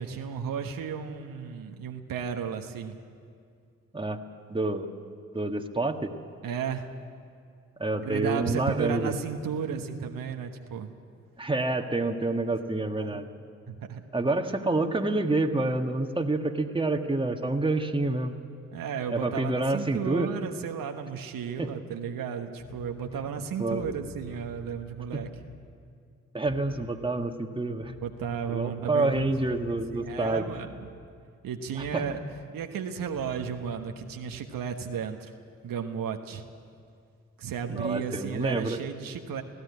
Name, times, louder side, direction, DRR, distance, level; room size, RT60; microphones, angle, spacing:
voice 1, 0.0-3.0 6.4-6.9 8.0-10.9 13.0-13.2 13.7-14.0 18.7-25.3 28.0-29.3 29.9-30.9 31.4-32.2 32.5-35.3 35.6-36.4 37.4-39.4, right 7 dB, 65° right, 5 dB, 1.3 m, -34 dB
voice 2, 4.5-4.9 5.3-6.1 7.8-9.1 11.4-13.3 14.1-18.3 19.1-20.3 21.6-21.7 23.6-23.8 25.1-25.2 26.3-27.9 28.5-30.4 31.8-32.0 37.7-38.8, right 2 dB, 15° right, 5 dB, 1.6 m, -28 dB
sound 1, 22.6-25.6 26.5-26.9 27.8-31.0 31.8-32.2 33.1-34.4, left 1 dB, 40° left, 4.3 m, -47 dB
19.0 x 14.5 x 9.6 m, 2.3 s
hypercardioid pair, 45°, 36 cm